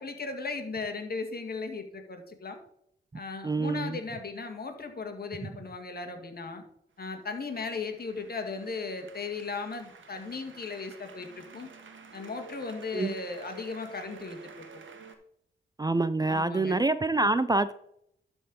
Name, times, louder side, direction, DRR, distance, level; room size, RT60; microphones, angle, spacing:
voice 1, 0.0-2.6 3.1-6.6 7.0-11.7 12.1-14.6 16.3-16.8, left 4 dB, 50° left, 5 dB, 1.9 m, -37 dB
voice 2, 3.4-4.0 12.9-13.1 15.8-17.7, right 2 dB, 20° right, 14 dB, 0.4 m, -26 dB
sound 1, 7.0-15.1, right 5 dB, 70° right, 1.4 m, -50 dB
12.0 x 4.4 x 5.4 m, 0.73 s
cardioid pair, 70°, 20 cm